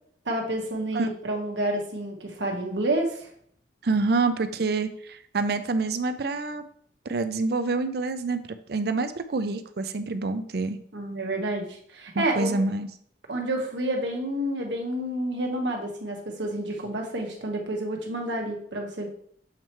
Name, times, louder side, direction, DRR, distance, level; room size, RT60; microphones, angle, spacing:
voice 1, 0.2-3.3 10.9-12.6 13.3-19.1, right 1 dB, 75° right, 1 dB, 1.3 m, -29 dB
voice 2, 3.8-6.6 7.1-8.4 8.7-10.8 12.1-12.9, right 3 dB, 55° right, 10 dB, 0.5 m, -27 dB
7.3 x 3.1 x 4.4 m, 0.64 s
head